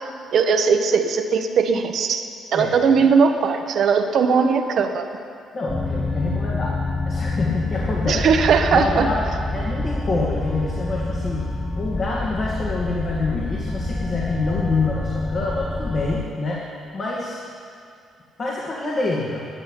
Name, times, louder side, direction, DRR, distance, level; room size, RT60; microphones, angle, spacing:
voice 1, 0.3-2.3 2.5-5.0 8.1-9.1, right 5 dB, 65° right, 5 dB, 1.0 m, -19 dB
voice 2, 5.5-6.8 7.0-8.2 8.7-9.2 9.5-17.4 18.4-19.4, left 3 dB, 50° left, -4 dB, 2.3 m, -26 dB
sound 1, 5.7-16.2, left 2 dB, 10° left, 1.1 m, -27 dB
12.0 x 8.6 x 9.9 m, 2.5 s
cardioid pair, 90°, 0 cm